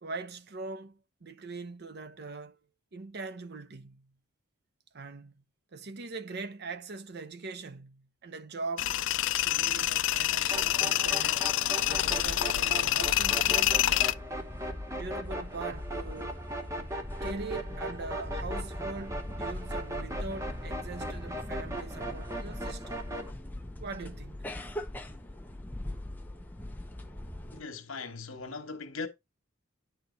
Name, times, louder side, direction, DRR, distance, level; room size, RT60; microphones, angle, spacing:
voice 1, 0.0-2.6 2.9-4.1 4.9-5.4 5.7-8.9 9.4-11.5 11.9-14.1 14.9-16.4 17.2-23.1 23.8-24.4, right 3 dB, 50° right, 0.7 m, -41 dB
Tools, 8.8-14.1, left 14 dB, 65° left, 0.4 m, -27 dB
sound 1, 10.5-23.3, right 1 dB, 15° right, 0.9 m, -39 dB
sound 2, 11.8-27.6, left 1 dB, 10° left, 0.7 m, -40 dB
voice 2, 27.5-29.1, left 4 dB, 80° left, 1.3 m, -39 dB
9.8 x 4.5 x 4.0 m
head